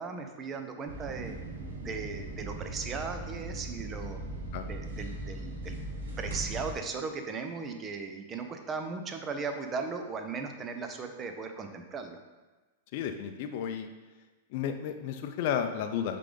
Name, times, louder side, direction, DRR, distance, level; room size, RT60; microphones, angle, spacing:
voice 1, 0.0-1.4 1.8-4.2 4.6-5.8 6.2-12.2, right 4 dB, 25° right, 6 dB, 0.7 m, -37 dB
sound 1, 0.9-6.7, right 2 dB, 85° right, 1.3 m, -39 dB
voice 2, 12.9-13.9 14.5-16.2, left 8 dB, 55° left, 6 dB, 0.5 m, -32 dB
6.5 x 3.8 x 3.8 m, 1.2 s
hypercardioid pair, 135°, 0 cm